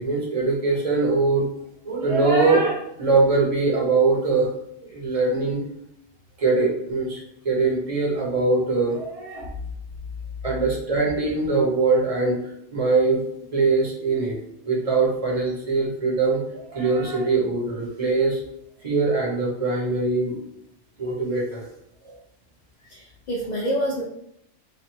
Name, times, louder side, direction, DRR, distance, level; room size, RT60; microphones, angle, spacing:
voice 1, 0.0-1.5 1.8-4.5 4.8-5.6 6.4-9.5 10.4-12.4 12.7-13.2 13.5-14.4 14.6-18.4 18.8-20.3 21.0-21.7, right 3 dB, 30° right, -3 dB, 1.1 m, -22 dB
voice 2, 22.9-24.0, equal, 55° left, -3 dB, 0.5 m, -27 dB
3.2 x 2.6 x 4.3 m, 0.75 s
omnidirectional pair, 1.3 m